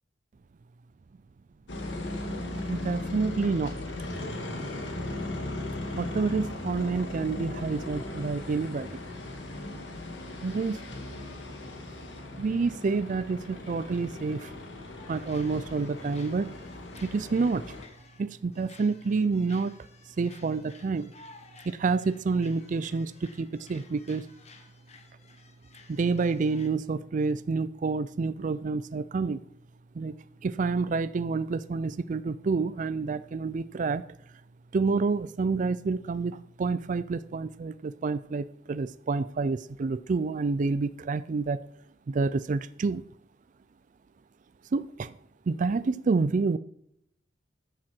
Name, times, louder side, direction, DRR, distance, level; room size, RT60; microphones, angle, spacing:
sound 1, 1.7-17.9, left 2 dB, 75° left, 2.2 m, -37 dB
voice 1, 2.7-3.8 6.0-8.9 10.4-10.8 12.4-14.5 15.1-16.6 17.0-17.7 18.2-19.8 20.2-21.1 21.7-24.3 25.9-29.4 30.0-30.1 30.4-34.0 34.7-41.6 42.1-43.0 44.7-45.1 45.5-46.6, right 4 dB, 45° right, 14 dB, 0.4 m, -28 dB
sound 2, 14.8-26.7, left 4 dB, 35° left, 1.3 m, -55 dB
13.5 x 7.5 x 4.4 m, 0.73 s
head